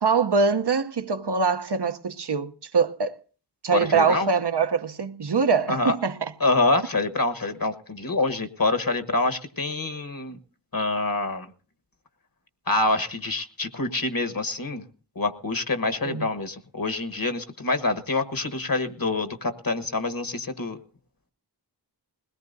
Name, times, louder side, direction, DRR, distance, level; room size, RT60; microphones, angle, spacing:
voice 1, 0.0-3.2 3.6-6.3 16.0-16.3, right 5 dB, 75° right, 0.9 m, -23 dB
voice 2, 3.7-4.3 5.7-5.9 6.4-10.4 10.7-11.5 12.7-14.9 15.1-20.8, left 2 dB, 55° left, 1.3 m, -26 dB
21.0 x 18.0 x 2.7 m
wide cardioid pair, 50°, 41 cm